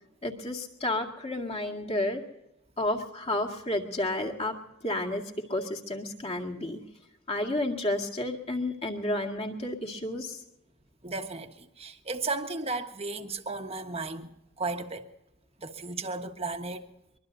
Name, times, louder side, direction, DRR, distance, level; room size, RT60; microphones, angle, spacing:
voice 1, 0.2-2.2 2.8-4.6 4.8-6.8 7.3-10.4, left 1 dB, 30° left, 2.1 m, -31 dB
voice 2, 11.0-15.1 15.6-16.8, right 3 dB, 30° right, 1.3 m, -35 dB
23.5 x 22.0 x 2.7 m
head